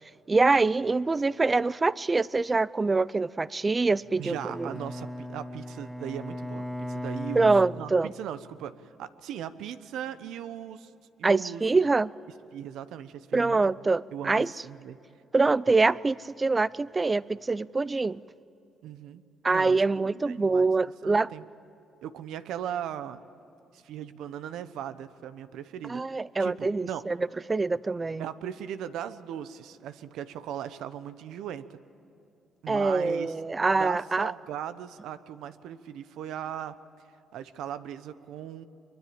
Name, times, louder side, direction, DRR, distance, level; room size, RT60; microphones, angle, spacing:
voice 1, 0.3-4.7 7.4-8.1 11.2-12.1 13.3-14.5 15.3-18.2 19.4-21.3 25.9-27.2 27.5-28.2 32.7-34.3, right 3 dB, 25° right, 0.5 m, -25 dB
Bowed string instrument, 4.1-8.4, left 1 dB, 5° left, 1.0 m, -38 dB
voice 2, 4.2-10.9 11.2-11.6 12.5-15.0 18.8-19.2 19.5-20.7 21.0-21.5 22.0-23.2 23.7-26.0 26.4-27.1 28.2-31.8 32.6-33.3 33.7-36.8 37.3-38.6, right 10 dB, 85° right, 1.0 m, -38 dB
25.0 x 23.0 x 8.7 m
cardioid pair, 90°, 0 cm